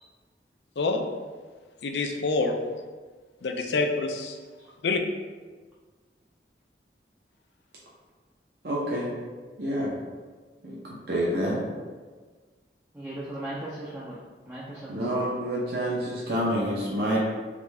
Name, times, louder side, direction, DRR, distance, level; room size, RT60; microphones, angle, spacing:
voice 1, 0.8-1.1 1.8-2.6 3.4-4.4 4.8-5.0, left 3 dB, 80° left, 5 dB, 0.4 m, -26 dB
voice 2, 8.6-9.1 9.6-9.9 10.6-10.8 11.1-11.6 14.9-17.2, equal, 65° right, -5 dB, 0.7 m, -27 dB
voice 3, 12.9-14.2 14.5-15.3, right 1 dB, 10° right, -7 dB, 0.4 m, -37 dB
3.8 x 3.5 x 3.2 m, 1.4 s
head